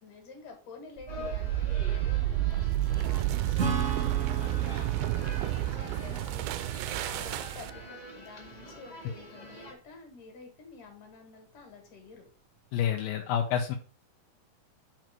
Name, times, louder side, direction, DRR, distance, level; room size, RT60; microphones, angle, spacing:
voice 1, 0.0-2.7 3.0-12.3, left 4 dB, 65° left, 3 dB, 3.4 m, -50 dB
sound 1, 1.0-7.9, right 14 dB, 90° right, 2.4 m, -30 dB
sound 2, 1.1-9.7, left 1 dB, 45° left, 0.5 m, -45 dB
Acoustic guitar / Strum, 3.6-7.1, right 5 dB, 60° right, 0.7 m, -36 dB
voice 2, 12.7-13.8, left 9 dB, 85° left, 2 dB, 2.6 m, -28 dB
6.3 x 4.5 x 6.3 m, 0.39 s
omnidirectional pair, 4.2 m